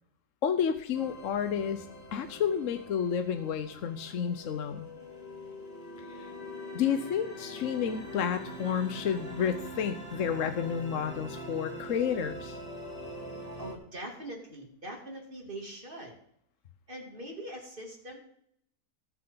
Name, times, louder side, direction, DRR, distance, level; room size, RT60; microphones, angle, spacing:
voice 1, 0.4-1.9 2.1-4.9 6.1-6.3 6.7-12.6, left 8 dB, 60° left, 9 dB, 1.1 m, -30 dB
sound 1, 0.9-13.7, equal, 25° left, 2.2 m, -43 dB
voice 2, 13.6-16.1 16.9-18.2, right 1 dB, 35° right, 1 dB, 3.0 m, -42 dB
19.0 x 7.8 x 3.9 m, 0.71 s
omnidirectional pair, 1.6 m